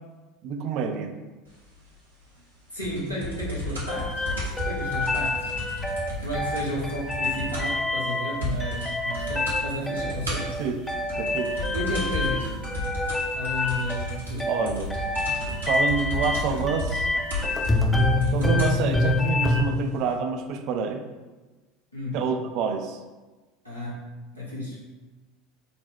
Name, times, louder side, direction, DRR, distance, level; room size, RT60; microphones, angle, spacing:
voice 1, 0.4-1.1 10.6-10.8 11.2-11.6 14.5-14.9 15.5-17.1 18.3-21.0 22.1-23.0, right 6 dB, 50° right, 6 dB, 0.3 m, -28 dB
voice 2, 2.7-4.3 4.6-5.5 6.2-10.6 11.7-12.6 13.3-14.5 21.9-22.2 23.6-24.9, equal, 90° left, -7 dB, 1.0 m, -32 dB
sound 1, 2.8-7.8 8.1-8.2 8.4-8.9 9.1-9.6 10.0-18.8 19.6-19.7, equal, 80° right, 0.9 m, -33 dB
sound 2, 3.9-19.6, left 2 dB, 10° left, 0.5 m, -27 dB
4.1 x 2.1 x 4.1 m, 1.2 s
figure-of-eight pair, 70°, 0 cm